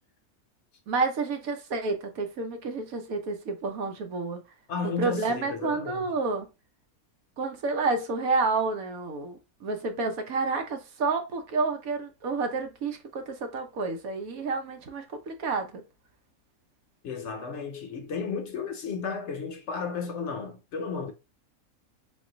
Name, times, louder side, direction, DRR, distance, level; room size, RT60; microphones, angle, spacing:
voice 1, 0.9-4.4 5.0-6.5 7.4-15.8, right 3 dB, 75° right, 1.3 m, -29 dB
voice 2, 4.7-6.1 17.0-21.1, left 5 dB, 60° left, 0.9 m, -33 dB
4.1 x 2.4 x 3.8 m
omnidirectional pair, 1.5 m